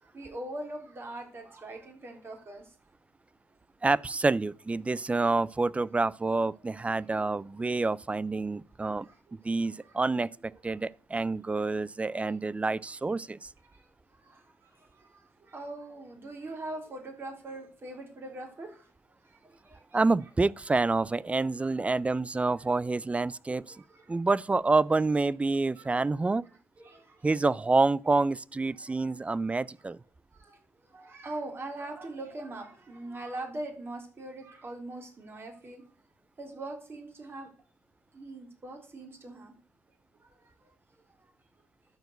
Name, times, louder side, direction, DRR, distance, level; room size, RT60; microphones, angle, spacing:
voice 1, 0.0-2.7 6.9-7.0 9.0-9.4 9.8-9.9 12.2-12.3 13.7-13.9 14.2-18.9 19.2-20.0 23.7-24.2 25.8-25.9 26.8-27.3 28.8-28.9 30.3-35.8 36.4-37.5 38.1-39.6 40.2-40.7, right 2 dB, 40° right, 3.7 m, -42 dB
voice 2, 3.8-9.1 9.4-13.5 19.9-23.8 24.1-26.4 27.2-30.0, right 3 dB, 20° right, 0.4 m, -27 dB
12.0 x 4.9 x 8.0 m
cardioid pair, 70°, 6 cm